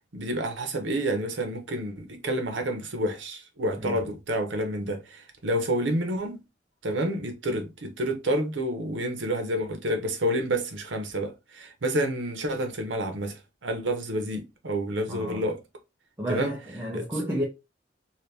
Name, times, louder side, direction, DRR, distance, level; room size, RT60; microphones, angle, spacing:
voice 1, 0.1-6.4 6.8-15.6 16.3-16.5 16.9-17.0, right 1 dB, 85° right, 0.8 m, -29 dB
voice 2, 15.1-15.4 16.2-17.4, equal, 15° right, 0.5 m, -31 dB
2.8 x 2.6 x 3.3 m
head